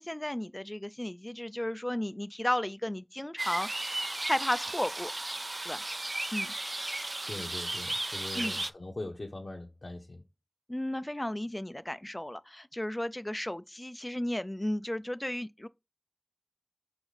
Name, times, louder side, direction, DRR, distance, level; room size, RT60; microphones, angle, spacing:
voice 1, 0.0-3.7 4.3-5.1 5.7-5.8 6.3-6.5 8.4-8.6 10.7-15.7, left 1 dB, 20° left, 0.3 m, -34 dB
sound 1, 3.4-8.7, right 2 dB, 50° right, 0.4 m, -35 dB
voice 2, 7.3-10.2, left 2 dB, 75° left, 0.9 m, -41 dB
5.1 x 4.9 x 4.0 m
wide cardioid pair, 40°, 0 cm